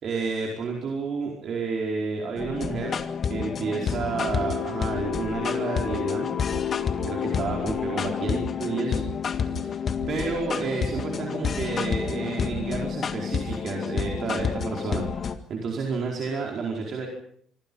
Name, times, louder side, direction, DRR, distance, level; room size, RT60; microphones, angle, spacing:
voice 1, 0.0-3.0 3.3-6.3 7.1-9.0 9.5-9.7 10.1-17.1, right 4 dB, 45° right, 0 dB, 4.9 m, -30 dB
sound 1, 2.4-15.4, left 6 dB, 35° left, 1.9 m, -29 dB
25.5 x 25.0 x 5.6 m, 0.63 s
cardioid pair, 160°, 0 cm